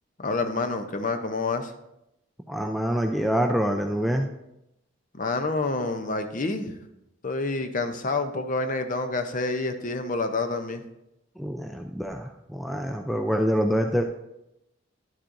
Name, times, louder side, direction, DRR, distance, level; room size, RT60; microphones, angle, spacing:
voice 1, 0.2-1.7 5.1-6.8 7.2-10.8, left 3 dB, 40° left, 7 dB, 0.6 m, -28 dB
voice 2, 2.5-4.3 11.4-14.0, equal, ahead, 3 dB, 0.3 m, -26 dB
11.0 x 7.3 x 2.6 m, 0.86 s
head